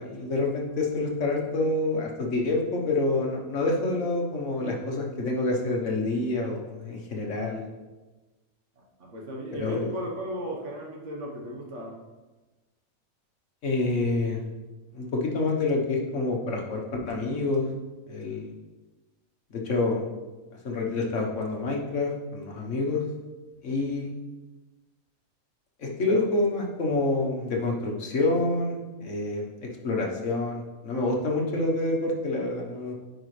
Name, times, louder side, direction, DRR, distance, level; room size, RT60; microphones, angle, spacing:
voice 1, 0.0-7.6 9.5-9.9 13.6-14.4 14.9-17.7 18.1-18.5 19.5-20.0 20.6-23.0 23.6-24.1 25.8-32.9, left 2 dB, 60° left, -1 dB, 1.5 m, -27 dB
voice 2, 8.8-12.0, equal, 60° right, -1 dB, 1.6 m, -36 dB
9.6 x 5.0 x 3.2 m, 1.2 s
omnidirectional pair, 1.5 m